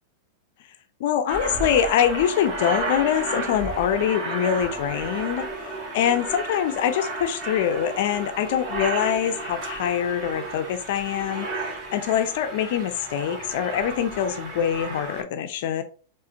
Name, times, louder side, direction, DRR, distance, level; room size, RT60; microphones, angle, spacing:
voice 1, 1.0-15.8, left 9 dB, 55° left, 9 dB, 0.4 m, -24 dB
Aircraft, 1.3-15.2, right 2 dB, 30° right, 1.4 m, -33 dB
4.8 x 2.4 x 2.6 m, 0.38 s
figure-of-eight pair, 95°, 0 cm